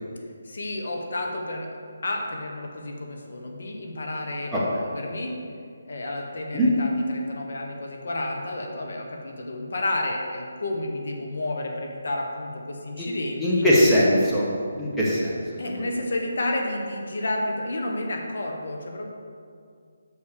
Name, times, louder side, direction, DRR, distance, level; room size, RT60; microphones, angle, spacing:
voice 1, 0.4-1.7 2.0-5.3 5.8-13.7 15.6-19.1, left 1 dB, 65° left, 1 dB, 1.4 m, -31 dB
voice 2, 13.4-14.5 14.8-15.3 15.8-15.9, equal, 5° left, -9 dB, 1.3 m, -20 dB
6.5 x 5.5 x 6.8 m, 2.2 s
hypercardioid pair, 160°, 0 cm